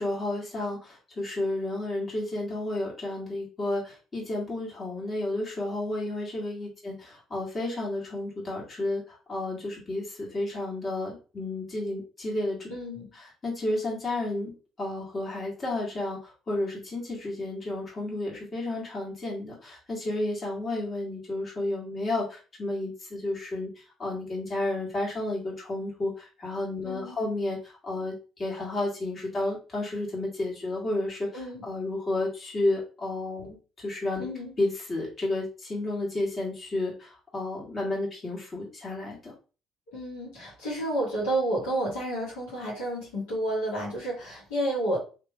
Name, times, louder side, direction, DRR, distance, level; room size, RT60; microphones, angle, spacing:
voice 1, 0.0-12.7 13.1-23.7 24.0-33.6 33.8-34.3 34.6-39.3, left 2 dB, 40° left, -4 dB, 1.8 m, -32 dB
voice 2, 12.7-13.1 26.8-27.2 31.3-31.6 34.2-34.5 39.9-45.0, right 1 dB, 90° left, -6 dB, 1.6 m, -30 dB
3.1 x 3.1 x 2.3 m, 0.34 s
hypercardioid pair, 60°, 0 cm